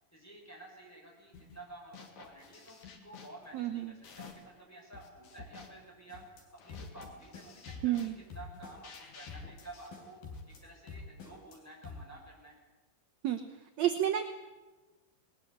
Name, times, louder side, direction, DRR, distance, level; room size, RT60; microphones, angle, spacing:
voice 1, 0.1-6.2 6.6-12.6, right 2 dB, 5° left, -3 dB, 5.9 m, -52 dB
sound 1, 1.3-1.6 1.9-4.6 4.9-10.6, left 5 dB, 55° left, 3.1 m, -53 dB
voice 2, 3.5-3.9 7.8-8.1 13.2-13.4 13.8-14.2, right 11 dB, 70° right, 6 dB, 1.7 m, -30 dB
sound 2, 6.1-6.4 6.7-7.1 7.3-8.0 8.3-9.0 9.3-9.6 9.9-10.6 10.9-11.6 11.8-12.0, left 4 dB, 75° left, 5.3 m, -46 dB
20.0 x 20.0 x 8.1 m, 1.2 s
omnidirectional pair, 4.3 m